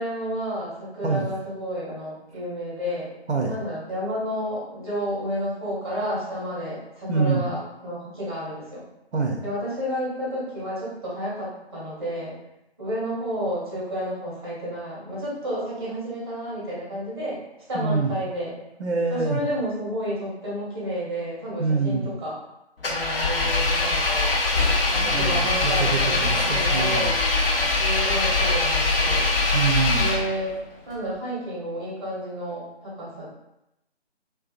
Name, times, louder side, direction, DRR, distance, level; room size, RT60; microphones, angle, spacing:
voice 1, 0.0-3.1 3.5-8.8 9.4-12.3 12.8-17.4 17.7-18.5 19.1-22.4 22.8-24.4 24.9-27.2 27.7-29.2 29.9-30.6 30.8-33.3, equal, 25° right, -8 dB, 0.8 m, -31 dB
voice 2, 7.1-7.4 9.1-9.4 17.7-18.1 18.8-19.4 21.6-22.1 25.0-27.1 29.5-30.2, right 4 dB, 85° right, 1 dB, 0.5 m, -25 dB
Engine, 22.8-30.6, left 3 dB, 60° left, 0.5 m, -22 dB
2.5 x 2.2 x 2.4 m, 0.87 s
figure-of-eight pair, 155°, 33 cm